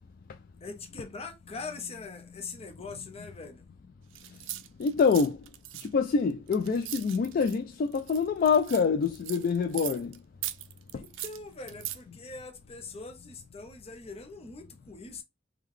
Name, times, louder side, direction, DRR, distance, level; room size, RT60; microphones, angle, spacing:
voice 1, 0.6-3.6 10.9-15.2, left 4 dB, 30° left, 0.7 m, -42 dB
sound 1, 4.1-7.6 7.9-10.2 10.4-12.0, right 13 dB, 90° right, 0.4 m, -40 dB
voice 2, 4.8-5.4 5.8-10.2 10.9-11.0, left 5 dB, 50° left, 0.3 m, -26 dB
3.7 x 2.3 x 3.1 m
head